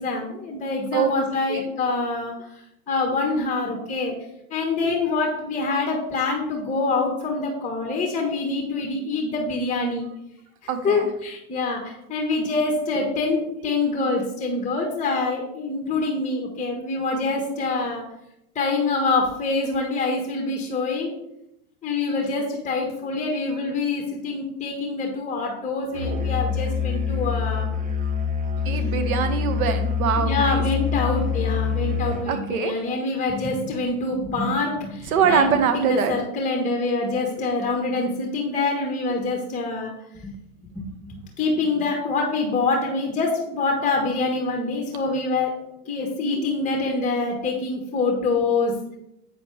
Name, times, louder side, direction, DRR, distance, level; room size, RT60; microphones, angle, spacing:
voice 1, 0.0-2.3 2.9-4.1 4.5-10.1 10.8-18.0 18.5-21.1 21.8-27.7 30.2-39.9 40.7-48.8, left 3 dB, 15° left, 1 dB, 1.4 m, -25 dB
voice 2, 10.7-11.1 28.6-30.6 32.3-32.7 35.1-36.1 46.4-46.5, right 7 dB, 70° right, 8 dB, 1.3 m, -23 dB
Musical instrument, 25.9-32.3, left 6 dB, 20° right, 0.9 m, -25 dB
8.0 x 6.9 x 3.3 m, 0.82 s
hypercardioid pair, 95°, 44 cm